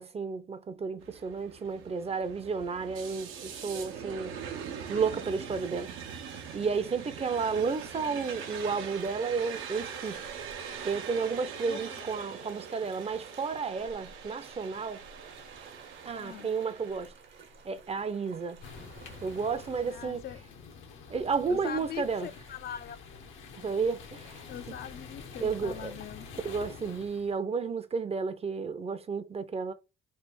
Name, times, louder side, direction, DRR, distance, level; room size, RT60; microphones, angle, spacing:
voice 1, 0.0-4.4 4.9-5.9 6.5-10.2 10.8-15.0 16.0-17.1 17.6-18.6 19.2-20.2 21.1-22.3 23.6-24.5 25.4-25.9 26.4-29.7, right 5 dB, 30° right, 0.5 m, -32 dB
sound 1, 1.0-17.1, right 7 dB, 85° right, 0.8 m, -42 dB
sound 2, 5.2-20.0, right 5 dB, 70° right, 1.0 m, -54 dB
voice 2, 11.7-12.1 16.2-16.5 19.9-20.4 21.5-23.1 24.5-26.3, left 8 dB, 55° left, 0.4 m, -42 dB
sound 3, 18.6-27.4, left 5 dB, 80° left, 0.9 m, -47 dB
3.3 x 2.4 x 4.4 m
cardioid pair, 90°, 20 cm